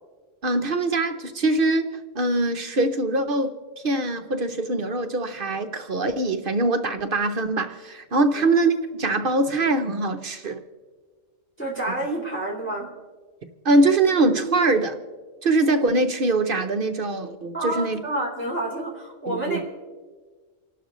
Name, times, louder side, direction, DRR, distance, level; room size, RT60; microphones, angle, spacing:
voice 1, 0.4-3.6 3.8-10.6 13.6-15.0 15.4-18.0 19.3-19.6, right 2 dB, 50° right, 7 dB, 0.9 m, -23 dB
voice 2, 11.6-12.9 17.5-19.6, right 1 dB, 10° left, -4 dB, 2.5 m, -29 dB
28.5 x 12.0 x 3.1 m, 1.5 s
omnidirectional pair, 1.3 m